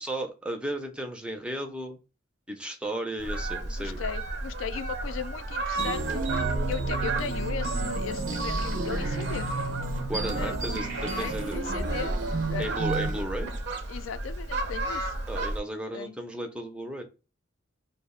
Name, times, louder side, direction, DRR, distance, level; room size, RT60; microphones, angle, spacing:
voice 1, 0.0-2.0 2.5-4.0 10.1-11.6 12.6-13.5 15.3-17.0, right 1 dB, 5° right, 0.4 m, -34 dB
Fowl, 3.2-15.6, right 2 dB, 55° right, 0.6 m, -32 dB
voice 2, 3.7-6.2 6.7-9.5 10.4-10.8 11.1-12.1 12.5-12.8 13.9-15.1 15.9-16.2, left 7 dB, 85° left, 0.3 m, -37 dB
sound 1, 5.7-13.2, right 3 dB, 90° right, 0.9 m, -32 dB
2.4 x 2.0 x 3.5 m
head